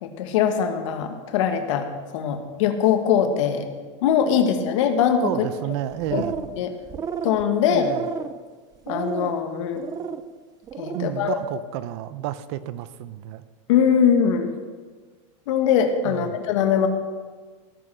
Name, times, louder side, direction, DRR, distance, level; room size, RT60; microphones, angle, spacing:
voice 1, 0.0-1.9 2.1-3.7 4.0-5.3 6.1-6.2 6.6-6.7 7.2-7.8 8.9-9.8 10.8-11.4 13.7-14.5 15.5-16.9, left 8 dB, 70° left, 6 dB, 1.8 m, -21 dB
voice 2, 4.3-4.8 5.2-6.4 7.6-8.1 10.9-13.4 16.0-16.4, right 13 dB, 55° right, 15 dB, 0.8 m, -31 dB
sound 1, 5.9-6.6 6.9-7.4 7.8-8.4 8.8-9.3 9.8-10.2 10.6-11.1, right 7 dB, 20° right, 0.6 m, -32 dB
17.0 x 7.7 x 6.3 m, 1.4 s
supercardioid pair, 145°, 17 cm